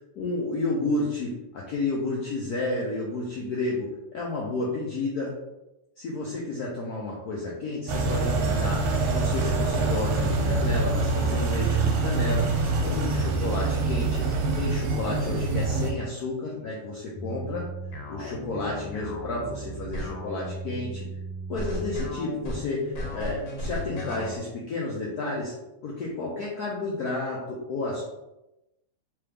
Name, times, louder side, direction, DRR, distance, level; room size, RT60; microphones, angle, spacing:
voice 1, 0.1-5.3 6.0-8.8 9.1-12.5 12.8-17.7 18.1-21.1 21.5-25.5 25.8-28.0, left 2 dB, 80° left, -3 dB, 0.8 m, -31 dB
sound 1, 7.9-15.9, right 3 dB, 85° right, 1.6 m, -25 dB
sound 2, 17.1-24.4, equal, 60° left, 1.3 m, -35 dB
3.4 x 3.4 x 3.3 m, 0.94 s
omnidirectional pair, 2.4 m